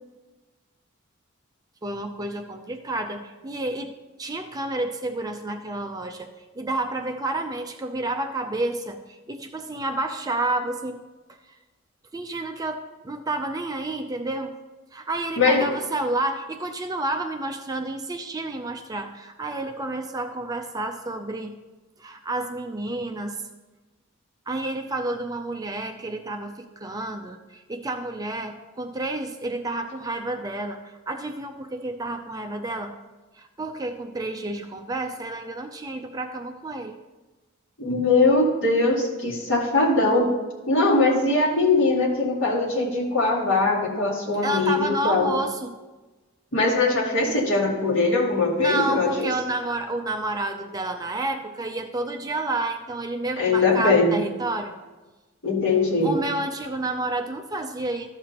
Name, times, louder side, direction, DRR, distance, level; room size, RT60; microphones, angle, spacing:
voice 1, 1.8-3.9 4.2-11.0 11.3-11.6 12.1-14.6 14.9-21.6 22.0-23.4 24.5-32.9 33.3-37.0 44.4-45.8 48.6-54.7 56.0-58.1, right 2 dB, 20° right, 6 dB, 0.4 m, -30 dB
voice 2, 15.4-15.7 37.8-40.4 40.7-45.3 46.5-49.3 53.4-54.2 55.4-56.2, left 3 dB, 65° left, -4 dB, 2.3 m, -21 dB
13.5 x 6.7 x 2.9 m, 1.2 s
head